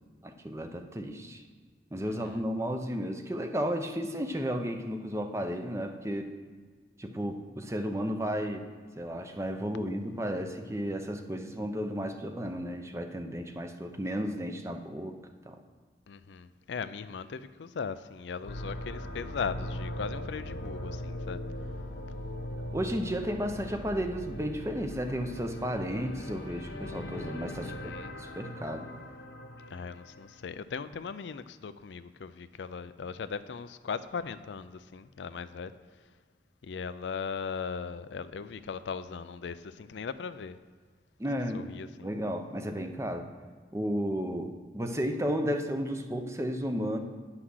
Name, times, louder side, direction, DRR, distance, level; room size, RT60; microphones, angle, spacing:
voice 1, 0.2-1.4 1.9-6.3 7.0-8.7 9.0-15.2 15.5-15.6 22.7-28.9 41.2-41.7 42.0-43.3 43.7-47.0, equal, 15° right, 0.7 m, -33 dB
voice 2, 2.1-2.4 16.1-21.4 27.6-28.2 29.7-35.7 36.6-40.6 41.5-42.1, left 5 dB, 85° left, 0.4 m, -38 dB
sound 1, 18.4-30.4, left 1 dB, 65° left, 1.1 m, -40 dB
9.8 x 5.8 x 6.3 m
head